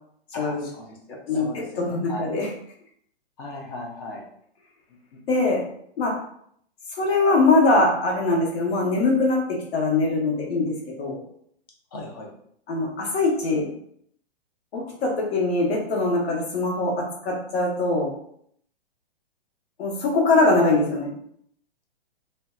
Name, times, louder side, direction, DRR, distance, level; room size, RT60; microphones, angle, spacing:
voice 1, 0.3-2.3 3.4-4.3 5.1-5.2 11.9-12.3, left 2 dB, 25° left, -1 dB, 0.3 m, -38 dB
voice 2, 1.3-2.5 5.3-5.7 6.0-6.2 6.9-11.2 12.7-13.7 14.7-18.1 19.8-21.1, left 2 dB, 75° left, -2 dB, 1.0 m, -22 dB
2.6 x 2.1 x 2.3 m, 0.67 s
hypercardioid pair, 145°, 31 cm